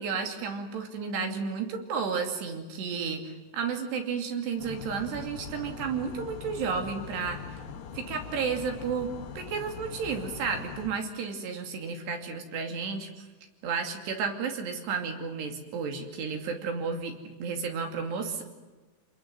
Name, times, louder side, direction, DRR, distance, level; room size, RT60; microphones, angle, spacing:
voice 1, 0.0-7.6 7.9-13.3 13.6-17.1 17.4-18.4, right 5 dB, 75° right, 4 dB, 4.7 m, -32 dB
sound 1, 4.6-10.9, left 6 dB, 70° left, 3.4 m, -41 dB
28.0 x 21.0 x 7.8 m, 1.2 s
omnidirectional pair, 5.0 m